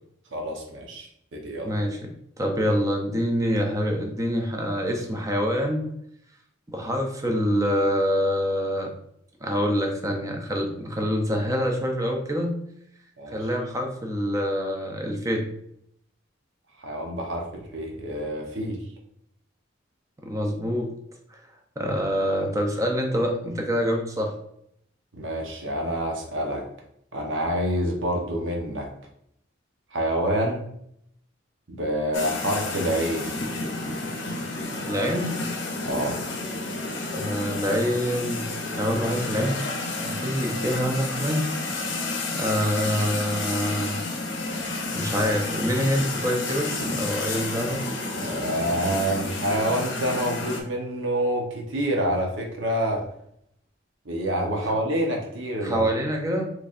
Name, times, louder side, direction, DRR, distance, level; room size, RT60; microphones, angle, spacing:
voice 1, 0.3-1.7 13.2-13.4 16.8-18.8 25.1-26.6 27.1-28.9 29.9-30.7 31.7-33.3 35.8-36.2 48.1-53.1 54.0-55.9, right 1 dB, 75° right, 1 dB, 0.9 m, -27 dB
voice 2, 1.6-2.1 2.4-5.9 6.7-8.9 9.4-12.6 13.3-15.5 20.2-20.9 21.3-21.4 21.8-24.3 34.8-35.4 37.1-39.6 40.0-41.5 42.3-44.0 44.9-46.7 47.0-47.8 55.6-56.5, equal, 15° right, 2 dB, 0.5 m, -26 dB
sound 1, 32.1-50.6, left 2 dB, 65° left, 0.6 m, -31 dB
4.0 x 3.2 x 2.5 m, 0.72 s
head